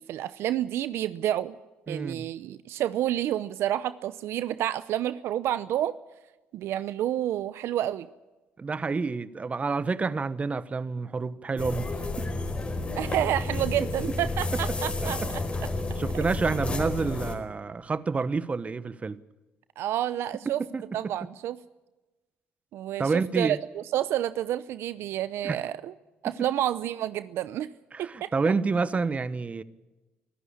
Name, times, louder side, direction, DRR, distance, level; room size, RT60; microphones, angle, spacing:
voice 1, 0.0-1.6 1.9-5.9 6.5-8.1 13.0-15.4 19.8-20.6 20.9-21.6 22.7-23.1 23.4-25.9 26.2-27.7 28.0-28.5, right 12 dB, 70° right, 0.7 m, -29 dB
voice 2, 1.9-2.3 8.6-11.9 12.2-12.3 13.8-13.9 14.5-15.3 16.0-19.2 20.6-21.1 23.0-23.6 25.4-25.6 27.9-29.6, right 4 dB, 30° right, 1.1 m, -29 dB
sound 1, 11.6-17.4, left 2 dB, 25° left, 4.4 m, -31 dB
25.0 x 14.0 x 8.6 m
supercardioid pair, 75°, 4 cm